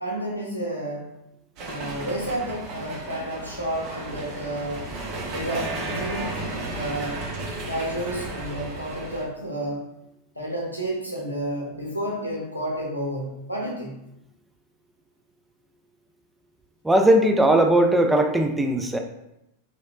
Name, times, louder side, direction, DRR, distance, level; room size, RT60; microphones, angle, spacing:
voice 1, 0.0-1.1 1.6-4.9 5.2-7.3 7.7-9.9 10.4-14.0, right 1 dB, 90° left, -2 dB, 0.7 m, -31 dB
sound 1, 1.6-9.2, right 2 dB, 40° right, 0.7 m, -33 dB
voice 2, 16.8-19.0, right 1 dB, 5° right, 4 dB, 0.3 m, -18 dB
2.9 x 2.9 x 2.4 m, 0.85 s
figure-of-eight pair, 90°, 0 cm